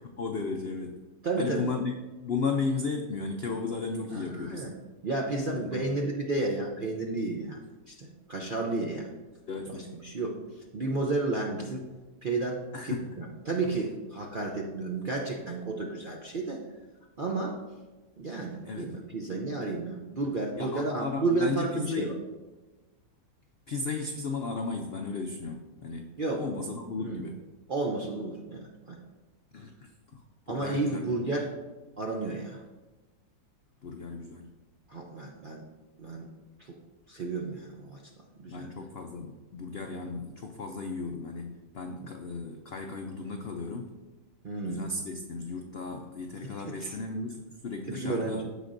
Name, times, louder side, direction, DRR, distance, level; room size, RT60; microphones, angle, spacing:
voice 1, 0.0-1.0 1.4-4.7 5.5-5.8 9.5-9.9 12.7-13.2 13.6-13.7 18.6-18.9 20.6-22.2 23.7-26.1 26.4-27.4 29.5-31.1 33.8-34.5 38.5-44.0 44.6-48.4, left 4 dB, 75° left, 3 dB, 0.5 m, -35 dB
voice 2, 1.2-1.7 4.1-4.7 5.0-7.6 7.9-9.1 9.7-11.8 12.2-16.6 17.2-17.6 18.2-22.1 26.2-26.4 27.0-27.2 27.7-29.0 30.5-31.5 32.0-32.6 34.9-35.6 36.0-36.3 36.6-36.7 37.1-38.0 38.4-38.7 40.0-40.1 44.4-44.8 46.7-46.9 47.9-48.4, right 3 dB, 55° right, -1 dB, 0.5 m, -32 dB
14.5 x 5.1 x 2.6 m, 1.2 s
omnidirectional pair, 1.8 m